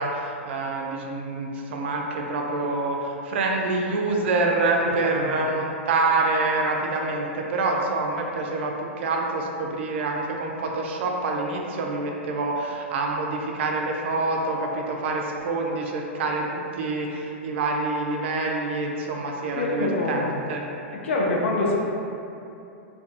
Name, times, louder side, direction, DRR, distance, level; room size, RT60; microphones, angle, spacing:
voice 1, 0.0-20.6, right 3 dB, 65° right, 0 dB, 0.4 m, -26 dB
voice 2, 4.8-5.5 19.5-20.5 20.9-21.8, left 2 dB, 75° left, -2 dB, 0.5 m, -26 dB
2.3 x 2.3 x 2.5 m, 2.7 s
hypercardioid pair, 110°, 7 cm